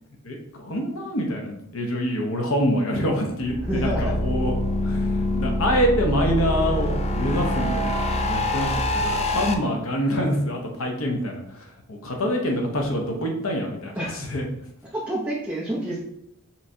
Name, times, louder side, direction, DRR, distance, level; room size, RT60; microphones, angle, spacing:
voice 1, 0.2-4.5 4.8-14.4, equal, 75° left, 2 dB, 0.9 m, -26 dB
sound 1, 3.4-9.5, left 1 dB, 30° left, 0.4 m, -25 dB
voice 2, 3.6-4.1 9.3-9.7 14.0-14.2 14.9-16.0, right 1 dB, 5° right, -7 dB, 0.8 m, -29 dB
5.6 x 3.1 x 2.7 m, 0.77 s
head